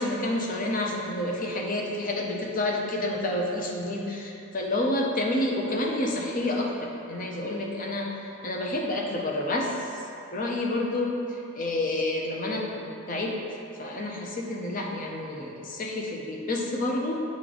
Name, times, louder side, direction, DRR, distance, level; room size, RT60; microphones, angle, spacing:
voice 1, 0.0-8.2 8.4-9.7 10.3-13.4 13.8-17.2, left 1 dB, 40° left, 0 dB, 0.6 m, -29 dB
8.4 x 3.2 x 3.9 m, 2.7 s
head